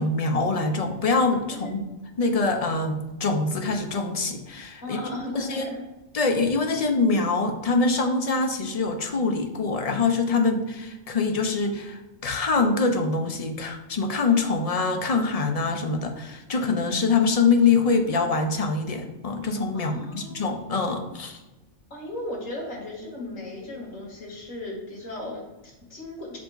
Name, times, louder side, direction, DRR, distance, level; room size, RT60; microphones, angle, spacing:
voice 1, 0.0-1.8 2.2-5.0 5.3-5.7 6.1-21.4, left 4 dB, 40° left, 4 dB, 0.6 m, -24 dB
voice 2, 4.8-5.8 19.7-20.4 21.9-26.4, left 1 dB, 85° left, -2 dB, 2.2 m, -36 dB
5.6 x 5.0 x 3.9 m, 1.1 s
omnidirectional pair, 1.3 m